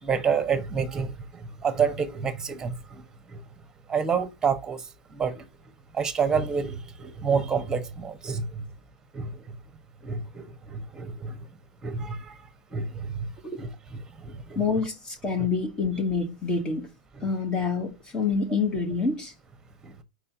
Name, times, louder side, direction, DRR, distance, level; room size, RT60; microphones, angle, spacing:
voice 1, 0.0-3.4 3.9-5.5 5.9-8.7 9.1-9.4 10.0-11.4 11.8-12.4 12.7-13.3 13.6-14.6 17.1-17.2 19.8-19.9, right 6 dB, 15° right, 1.3 m, -29 dB
voice 2, 14.5-16.9 17.2-19.3, left 4 dB, 20° left, 1.4 m, -27 dB
4.9 x 4.3 x 5.6 m
hypercardioid pair, 110°, 4 cm